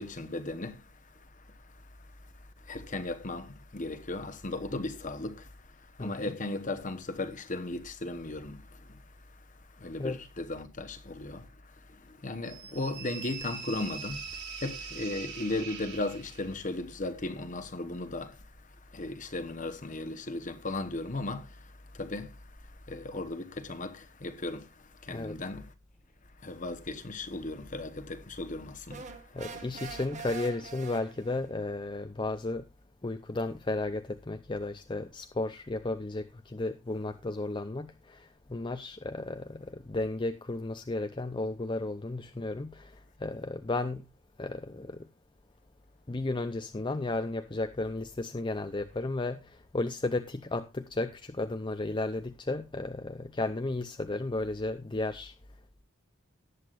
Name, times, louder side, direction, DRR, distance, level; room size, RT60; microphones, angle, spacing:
voice 1, 0.0-25.7 26.4-29.6, left 2 dB, 40° left, 1.2 m, -37 dB
voice 2, 6.0-6.4 10.0-10.2 25.1-25.3 29.3-32.6 33.0-44.0 44.4-45.1 46.1-55.3, left 2 dB, 25° left, 0.6 m, -34 dB
sound 1, 12.4-16.6, right 6 dB, 60° right, 3.3 m, -42 dB
sound 2, 28.9-31.5, right 5 dB, 35° right, 1.5 m, -44 dB
18.5 x 8.2 x 2.5 m
head